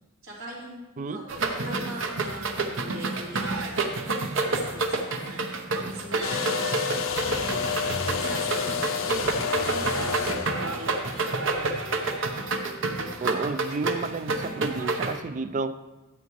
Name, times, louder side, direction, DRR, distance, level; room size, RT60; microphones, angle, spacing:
voice 1, 0.2-0.8 1.1-3.8 4.3-6.5 7.1-12.1, right 1 dB, 85° right, -6 dB, 3.6 m, -41 dB
sound 1, 1.3-15.1, right 3 dB, 65° right, 0.9 m, -29 dB
sound 2, 6.2-11.7, left 5 dB, 70° left, 0.7 m, -29 dB
voice 2, 13.2-15.7, right 3 dB, 35° right, 13 dB, 0.4 m, -31 dB
13.0 x 8.1 x 3.1 m, 1.1 s
head